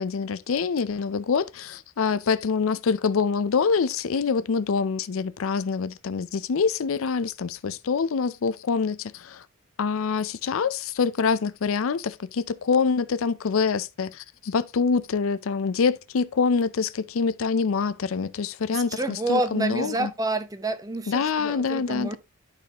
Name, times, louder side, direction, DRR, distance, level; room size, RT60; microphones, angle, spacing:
voice 1, 0.0-9.4 9.8-20.1 21.1-22.2, left 5 dB, 75° left, 0.5 m, -25 dB
voice 2, 18.7-22.2, right 2 dB, 15° right, 0.7 m, -28 dB
11.5 x 4.1 x 2.8 m
head